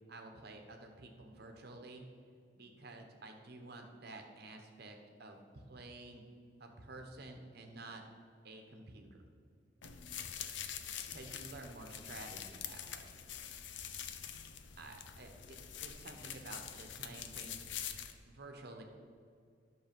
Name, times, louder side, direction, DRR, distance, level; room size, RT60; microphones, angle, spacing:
voice 1, 0.1-2.1 2.5-6.2 6.6-8.0 8.4-9.2 11.1-13.1 14.8-17.7 18.2-18.8, right 2 dB, 60° right, 4 dB, 1.3 m, -51 dB
sound 1, 9.8-18.1, left 9 dB, 75° left, 0.7 m, -45 dB
11.0 x 6.6 x 5.3 m, 2.3 s
head